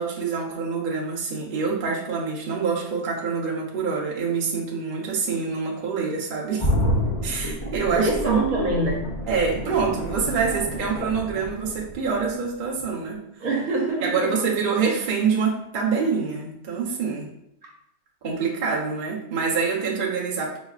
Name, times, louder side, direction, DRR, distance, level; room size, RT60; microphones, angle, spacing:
voice 1, 0.0-6.7 7.2-8.4 9.3-13.2 14.0-17.3 18.2-20.6, right 5 dB, 45° right, -3 dB, 0.8 m, -26 dB
sound 1, 6.6-12.4 12.8-12.9, left 1 dB, 35° left, 0.4 m, -28 dB
voice 2, 7.6-9.1 13.4-14.3 17.6-17.7, right 2 dB, 70° right, -1 dB, 1.3 m, -25 dB
4.6 x 3.1 x 2.4 m, 0.77 s
omnidirectional pair, 1.6 m